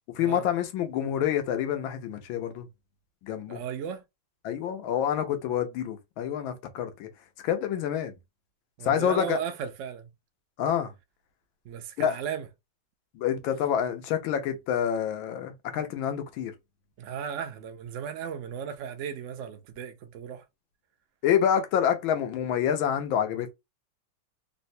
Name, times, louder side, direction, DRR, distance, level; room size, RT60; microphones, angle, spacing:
voice 1, 0.1-2.7 3.2-3.6 4.4-7.1 7.4-8.1 8.8-9.4 10.6-10.9 12.0-12.2 13.1-16.5 21.2-23.5, left 9 dB, 85° left, 1.5 m, -27 dB
voice 2, 3.5-4.0 8.8-10.1 11.6-12.5 17.0-20.4, right 8 dB, 80° right, 0.6 m, -36 dB
3.9 x 2.1 x 2.6 m
omnidirectional pair, 2.1 m